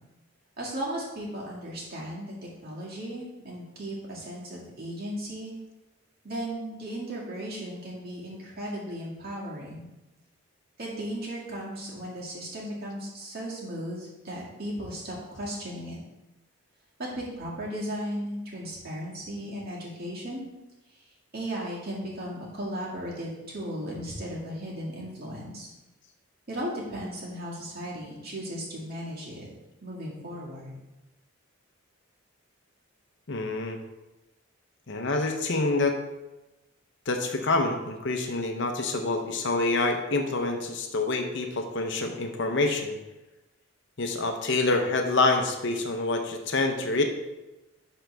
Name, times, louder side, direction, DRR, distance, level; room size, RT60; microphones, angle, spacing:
voice 1, 0.6-5.5 6.2-9.9 10.8-16.0 17.0-20.5 20.9-21.0 21.3-25.7 26.5-29.5 29.8-30.8, equal, 45° right, -5 dB, 2.1 m, -36 dB
voice 2, 33.3-33.8 34.9-36.0 37.1-43.0 44.0-47.0, left 3 dB, 60° left, 4 dB, 0.8 m, -27 dB
11.0 x 3.9 x 3.4 m, 1.0 s
head